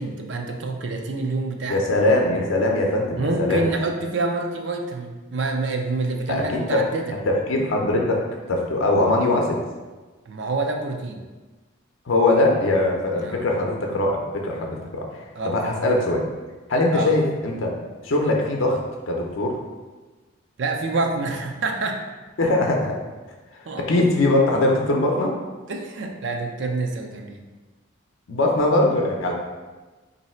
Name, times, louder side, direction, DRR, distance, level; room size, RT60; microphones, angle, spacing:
voice 1, 0.0-1.8 3.2-7.1 10.3-11.2 13.2-13.5 15.4-15.5 16.9-17.2 20.6-22.0 23.7-23.9 25.7-27.4, right 3 dB, 60° right, 2 dB, 0.4 m, -27 dB
voice 2, 1.7-3.6 6.3-6.8 7.1-8.2 8.5-9.6 12.1-16.2 16.7-17.7 18.0-18.8 19.1-19.6 22.4-23.0 23.8-25.3 28.3-29.3, left 2 dB, 80° left, 0 dB, 0.6 m, -21 dB
3.1 x 2.6 x 4.2 m, 1.2 s
head